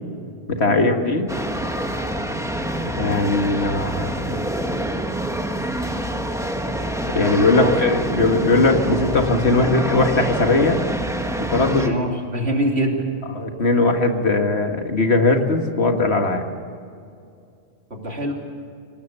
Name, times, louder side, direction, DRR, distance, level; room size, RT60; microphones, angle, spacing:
voice 1, 0.5-1.3 3.0-4.4 7.1-10.8 11.4-11.9 13.4-16.4, left 2 dB, 70° left, 4 dB, 2.1 m, -19 dB
sound 1, 1.3-11.9, right 1 dB, 5° right, 1.3 m, -26 dB
voice 2, 11.6-13.1 17.9-18.3, right 1 dB, 70° right, 0 dB, 3.6 m, -24 dB
26.5 x 18.5 x 6.9 m, 2.4 s
omnidirectional pair, 1.1 m